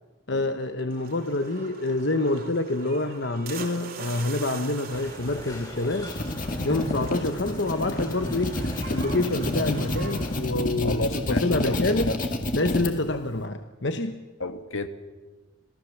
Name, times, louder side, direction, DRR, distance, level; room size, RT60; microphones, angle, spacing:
voice 1, 0.3-6.1 6.6-8.6 8.9-12.2 12.5-14.2, left 2 dB, 55° left, 1.0 m, -27 dB
sound 1, 0.9-10.3, right 4 dB, 45° right, 2.7 m, -43 dB
sound 2, 4.9-10.4, left 1 dB, 20° left, 4.1 m, -42 dB
sound 3, 5.8-12.9, left 1 dB, 40° left, 2.3 m, -29 dB
voice 2, 10.8-12.2 14.4-14.9, left 2 dB, 80° left, 2.0 m, -31 dB
27.0 x 18.0 x 7.2 m
head